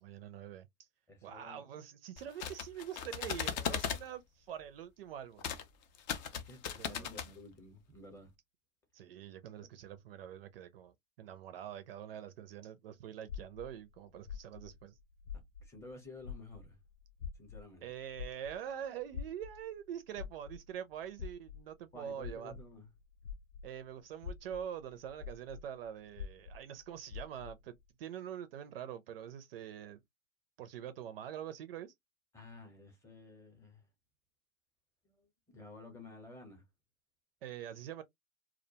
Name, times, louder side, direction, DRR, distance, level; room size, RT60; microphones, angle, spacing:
voice 1, 0.0-0.9 1.2-5.5 6.8-7.1 8.9-15.0 17.8-22.5 23.6-30.0 30.6-31.9 37.4-38.0, right 9 dB, 45° right, 0.5 m, -45 dB
voice 2, 1.1-1.6 6.3-8.3 15.6-16.8 17.4-17.9 21.9-22.9 32.3-33.8 35.0-36.6, left 2 dB, 5° left, 0.8 m, -52 dB
sound 1, 2.2-4.0 5.4-5.6 5.9-7.3, left 8 dB, 35° left, 0.5 m, -37 dB
sound 2, 13.3-15.9 16.2-23.8 24.1-27.7, left 7 dB, 85° left, 0.7 m, -46 dB
2.4 x 2.1 x 2.7 m
hypercardioid pair, 125°, 41 cm